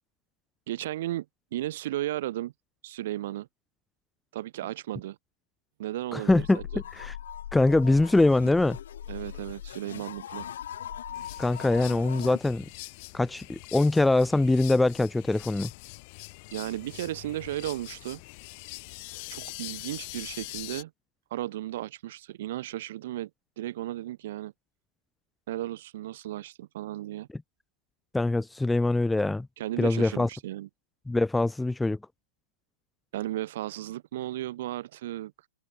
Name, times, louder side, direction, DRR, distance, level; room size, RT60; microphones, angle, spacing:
voice 1, 0.7-1.3 1.5-2.5 2.8-3.5 4.3-5.2 5.8-6.8 9.1-10.5 16.5-18.2 19.3-20.9 21.3-23.3 23.6-24.5 25.5-27.3 29.6-30.7 33.1-35.3, right 14 dB, 60° right, 4.6 m, -35 dB
voice 2, 6.1-6.6 6.9-7.1 7.5-8.8 11.4-12.7 13.1-15.7 28.1-29.5 29.8-30.3 31.1-32.0, left 2 dB, 5° left, 0.3 m, -23 dB
sound 1, 6.3-12.4, left 10 dB, 80° left, 1.9 m, -40 dB
sound 2, 11.1-20.8, left 28 dB, 45° left, 5.4 m, -43 dB
hypercardioid pair, 145°, 0 cm